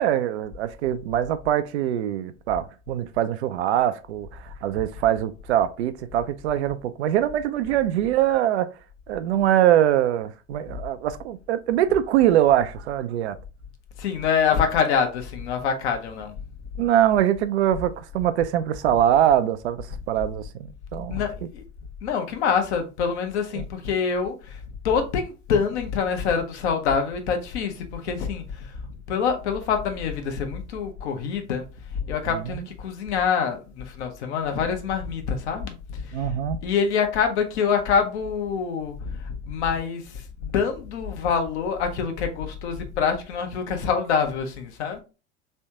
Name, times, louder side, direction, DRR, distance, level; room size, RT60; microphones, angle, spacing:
voice 1, 0.0-4.3 4.6-8.7 9.1-13.4 16.8-21.2 23.6-23.7 32.5-32.6 36.1-36.6, right 11 dB, 60° right, 0.5 m, -23 dB
voice 2, 14.0-16.3 21.1-21.6 22.0-24.6 24.8-31.7 31.9-36.3 36.6-45.0, left 6 dB, 60° left, 1.0 m, -26 dB
3.5 x 3.3 x 2.8 m
figure-of-eight pair, 80°, 39 cm